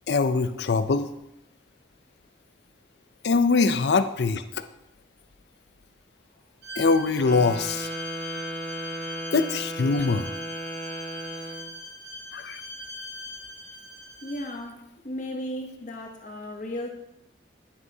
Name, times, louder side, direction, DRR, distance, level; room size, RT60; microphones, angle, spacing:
voice 1, 0.1-1.1 3.2-4.4 6.8-7.9 9.3-10.3 12.3-12.6, left 4 dB, 70° left, 0.5 m, -23 dB
Bowed string instrument, 6.6-14.5, left 1 dB, 75° right, 1.9 m, -41 dB
Wind instrument woodwind instrument, 7.1-11.7, equal, 5° left, 0.9 m, -35 dB
voice 2, 14.2-16.9, left 1 dB, 45° left, 0.9 m, -35 dB
9.7 x 8.1 x 2.8 m
head